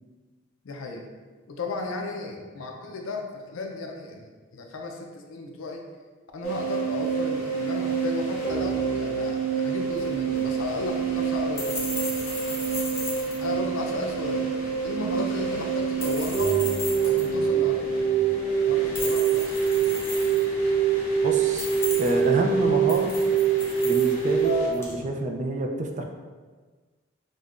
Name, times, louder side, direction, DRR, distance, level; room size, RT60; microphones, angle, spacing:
voice 1, 0.6-1.1 1.5-5.9 6.3-12.0 13.4-16.5 17.0-18.0 18.7-19.6, left 3 dB, 80° left, 2 dB, 0.5 m, -34 dB
sound 1, 6.4-24.7, right 6 dB, 40° left, 1.1 m, -25 dB
sound 2, 9.9-25.0, left 2 dB, 10° left, 0.6 m, -38 dB
voice 2, 21.2-21.7 22.0-23.2 23.8-26.0, right 2 dB, 35° right, 3 dB, 0.3 m, -27 dB
5.1 x 2.1 x 2.4 m, 1.4 s
head